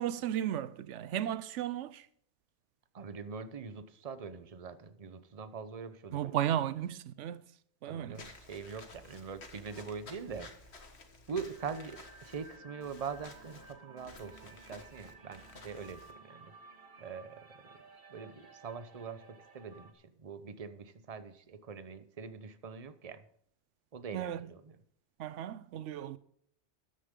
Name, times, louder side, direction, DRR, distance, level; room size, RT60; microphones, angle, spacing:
voice 1, 0.0-2.1 6.1-7.5 7.8-8.2 24.1-24.4 25.2-26.2, right 11 dB, 85° right, 1.0 m, -34 dB
voice 2, 2.9-6.3 7.8-10.5 11.3-16.5 17.0-17.7 18.1-23.2 23.9-24.8, right 5 dB, 35° right, 0.9 m, -43 dB
Walk footsteps / Squeak, 8.1-16.1, left 3 dB, 65° left, 1.8 m, -53 dB
sound 1, 11.3-19.9, right 3 dB, 55° right, 1.6 m, -56 dB
13.5 x 10.0 x 3.7 m
omnidirectional pair, 1.2 m